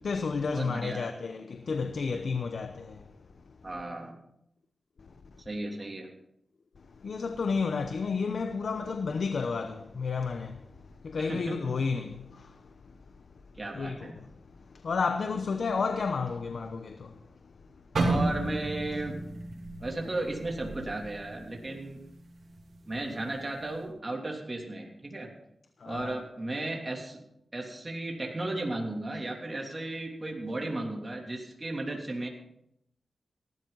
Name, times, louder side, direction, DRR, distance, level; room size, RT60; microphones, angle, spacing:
voice 1, 0.0-3.0 7.0-10.7 11.0-12.5 13.7-14.1 14.8-17.2 25.8-26.1, left 5 dB, 75° left, 0.9 m, -31 dB
voice 2, 0.5-1.1 3.6-4.2 5.4-6.1 11.2-11.8 13.6-14.2 18.0-19.2 19.8-22.0 22.9-25.3 25.8-27.2 27.5-32.3, right 2 dB, 30° right, 3.1 m, -35 dB
sound 1, 18.0-22.0 22.3-22.6 23.3-23.6, right 2 dB, 70° right, 3.1 m, -32 dB
18.0 x 12.5 x 4.1 m
cardioid pair, 70°, 0 cm